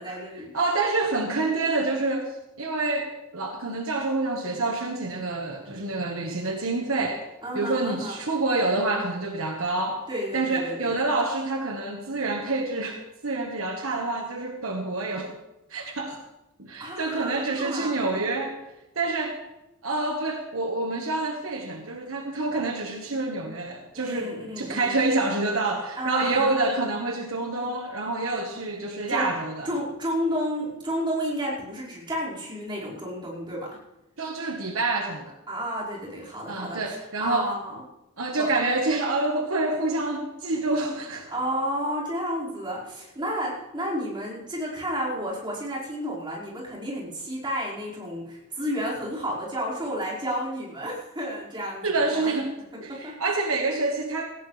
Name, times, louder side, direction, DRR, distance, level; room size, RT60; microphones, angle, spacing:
voice 1, 0.0-0.5 7.4-8.2 10.1-10.9 15.7-15.9 16.8-18.0 23.9-25.0 26.0-26.6 29.1-29.3 29.6-33.7 35.5-37.8 38.4-38.5 40.9-41.0 41.3-51.9 52.2-52.3 52.9-53.2, equal, 20° right, -6 dB, 5.2 m, -31 dB
voice 2, 0.5-2.3 2.6-7.2 7.5-10.1 10.3-15.3 15.7-16.2 16.6-18.6 18.9-19.4 19.8-29.7 34.2-35.3 36.5-37.5 38.2-41.3 51.8-52.5 52.8-54.3, right 2 dB, 70° right, 2 dB, 1.5 m, -27 dB
18.0 x 16.0 x 3.4 m, 0.96 s
head